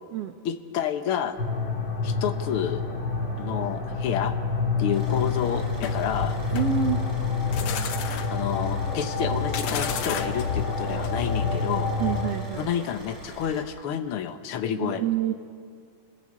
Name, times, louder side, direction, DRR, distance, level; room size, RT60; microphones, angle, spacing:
voice 1, 0.4-1.4 2.0-2.8 3.4-4.4 4.8-6.4 8.3-11.9 12.6-15.0, left 8 dB, 85° left, 7 dB, 1.2 m, -29 dB
sound 1, 1.4-12.3, left 4 dB, 35° left, 3.2 m, -28 dB
Car / Idling, 4.9-13.6, equal, 35° right, 8.1 m, -44 dB
sound 2, 5.8-11.5, left 7 dB, 65° left, 1.9 m, -33 dB
voice 2, 6.5-7.0 12.0-12.7 14.8-15.3, right 10 dB, 60° right, 5 dB, 1.8 m, -27 dB
29.5 x 21.0 x 8.6 m, 2.2 s
omnidirectional pair, 3.9 m